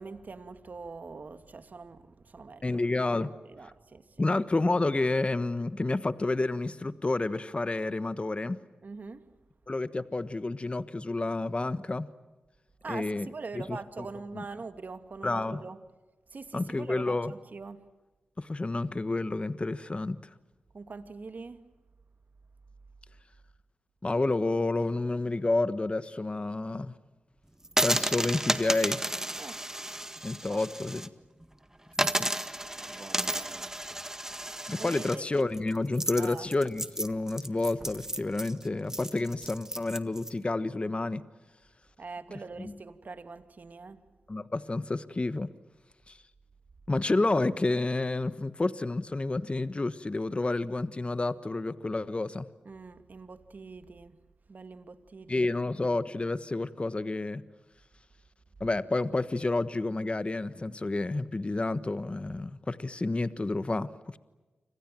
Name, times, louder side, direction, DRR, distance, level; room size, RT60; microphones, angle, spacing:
voice 1, 0.0-2.8 3.4-4.3 8.8-9.3 12.8-15.8 16.3-17.9 20.7-21.7 29.4-29.6 30.5-30.6 32.8-33.7 34.8-35.2 36.2-36.5 42.0-44.0 52.6-54.2 54.5-55.8, right 4 dB, 60° right, 2.3 m, -43 dB
voice 2, 2.6-3.3 4.2-8.6 9.7-12.1 12.9-13.3 13.5-13.8 14.3-14.4 15.2-15.6 16.5-17.3 18.4-20.2 24.0-26.9 27.8-29.0 30.2-31.1 32.0-32.3 32.8-32.9 34.7-41.2 42.6-42.7 44.3-45.5 46.1-46.2 46.9-52.5 55.3-57.4 58.6-64.2, left 2 dB, 35° left, 1.3 m, -30 dB
sound 1, 27.6-31.1 31.4-31.5 31.9-40.3, right 1 dB, 15° right, 1.8 m, -32 dB
29.5 x 26.0 x 7.7 m
cardioid pair, 45°, 3 cm